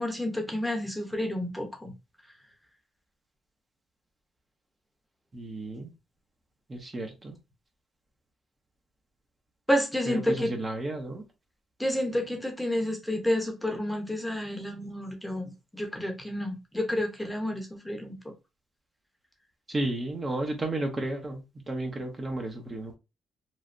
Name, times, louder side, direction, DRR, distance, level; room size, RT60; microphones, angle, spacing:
voice 1, 0.0-1.9 9.7-10.5 11.8-18.2, left 1 dB, 5° left, 0.8 m, -30 dB
voice 2, 5.3-5.9 6.7-7.4 10.1-11.2 19.7-22.9, right 1 dB, 30° right, 0.8 m, -33 dB
3.2 x 2.2 x 2.6 m
cardioid pair, 90°, 0 cm